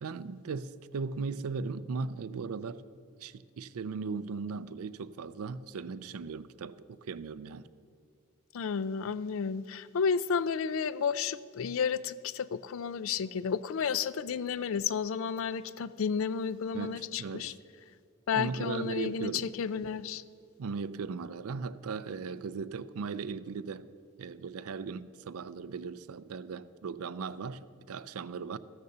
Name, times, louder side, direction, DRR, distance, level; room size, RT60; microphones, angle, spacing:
voice 1, 0.0-2.8 3.2-7.7 16.7-17.5 18.3-19.5 20.6-23.9 24.2-27.6 27.9-28.6, right 5 dB, 75° right, 0.4 m, -37 dB
voice 2, 8.5-17.5 18.3-20.2, left 6 dB, 60° left, 0.4 m, -32 dB
14.5 x 6.7 x 6.7 m
head